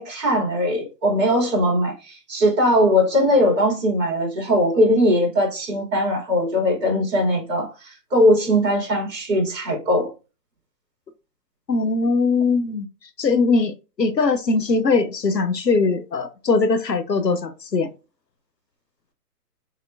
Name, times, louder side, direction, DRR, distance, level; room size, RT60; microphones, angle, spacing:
voice 1, 0.0-10.1, equal, 20° right, 2.5 m, -20 dB
voice 2, 11.7-12.9 13.2-17.9, left 4 dB, 85° left, 1.0 m, -21 dB
7.2 x 2.9 x 2.5 m
figure-of-eight pair, 130°, 48 cm